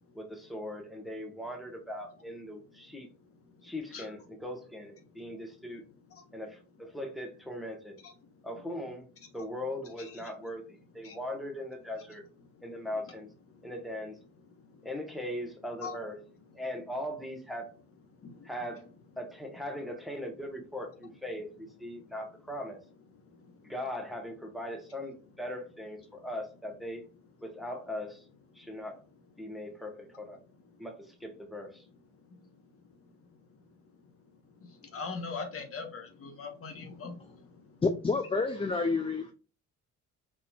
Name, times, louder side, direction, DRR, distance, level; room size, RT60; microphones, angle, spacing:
voice 1, 0.1-3.1 3.6-5.8 6.3-8.0 8.4-9.1 9.3-12.2 12.6-13.3 13.6-14.2 14.8-16.2 16.5-17.7 18.4-18.9 19.2-22.8 23.6-27.0 27.4-28.2 28.5-29.0 29.4-30.4 30.8-31.8, left 1 dB, ahead, 3 dB, 1.1 m, -39 dB
voice 2, 34.9-37.1, left 4 dB, 50° left, 4 dB, 1.0 m, -39 dB
voice 3, 37.8-39.3, left 3 dB, 20° left, 5 dB, 0.4 m, -28 dB
4.2 x 3.0 x 2.3 m, 0.34 s
cardioid pair, 90°, 30 cm